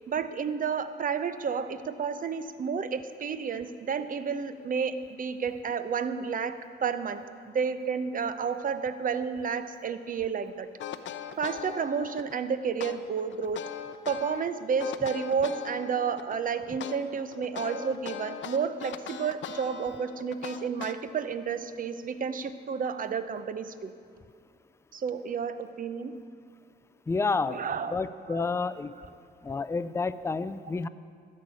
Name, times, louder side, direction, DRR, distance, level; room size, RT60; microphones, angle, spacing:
voice 1, 0.1-10.7 11.4-13.6 14.1-23.9 24.9-26.2 27.5-28.0 28.3-28.5 29.0-29.1, right 6 dB, 45° right, 12 dB, 0.7 m, -31 dB
sound 1, 10.8-12.4 12.8-14.4 14.8-16.4 16.8-21.3, left 9 dB, 70° left, 0.7 m, -40 dB
voice 2, 27.1-27.6 27.9-28.9 29.4-30.9, left 4 dB, 15° left, 14 dB, 0.4 m, -29 dB
12.5 x 6.5 x 9.4 m, 2.3 s
cardioid pair, 90°, 20 cm